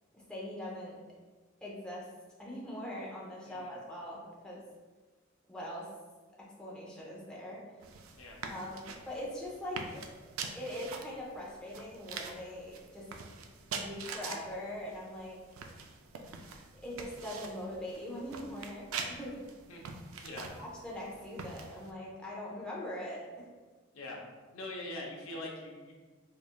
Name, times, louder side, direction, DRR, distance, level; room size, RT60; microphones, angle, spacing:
voice 1, 0.1-1.0 1.6-2.1 2.4-4.6 5.5-5.9 6.4-7.6 8.5-10.1 10.5-13.1 13.7-15.4 16.7-19.5 20.3-23.5, left 1 dB, 5° left, -6 dB, 0.7 m, -42 dB
sound 1, 7.8-21.9, right 5 dB, 80° right, 0.4 m, -45 dB
voice 2, 20.2-20.5 23.9-24.2 24.5-25.9, left 1 dB, 85° left, -1 dB, 0.7 m, -42 dB
4.6 x 2.6 x 2.2 m, 1.4 s
head